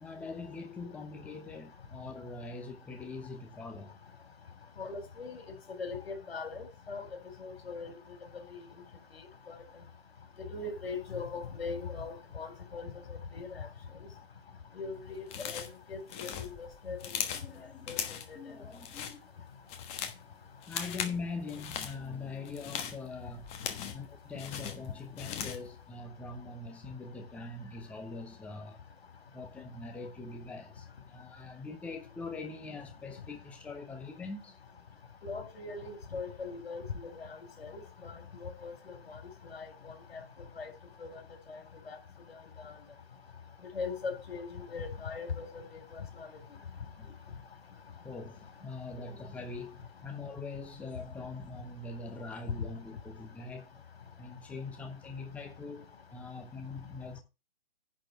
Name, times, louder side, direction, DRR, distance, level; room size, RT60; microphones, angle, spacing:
voice 1, 0.0-3.9 17.3-17.9 18.3-19.2 20.7-23.5 23.9-28.8 29.3-34.6 47.0-47.1 48.0-53.8 54.2-57.2, left 3 dB, 5° left, 0.9 m, -43 dB
voice 2, 4.8-5.4 5.8-7.1 7.4-8.0 8.3-8.7 9.5-9.6 10.4-13.7 14.7-17.0 17.9-18.0 18.3-18.4 35.2-40.2 40.6-40.7 41.0-41.2 41.5-42.0 42.6-42.7 43.7-46.3, left 4 dB, 80° left, 4.0 m, -40 dB
sound 1, 15.3-15.8 16.1-17.5 17.9-18.3 18.7-19.2 19.5-20.2 20.6-21.2 21.5-21.9 22.4-24.1 24.4-25.7, left 8 dB, 20° left, 1.2 m, -38 dB
10.5 x 4.4 x 7.5 m
hypercardioid pair, 150°, 30 cm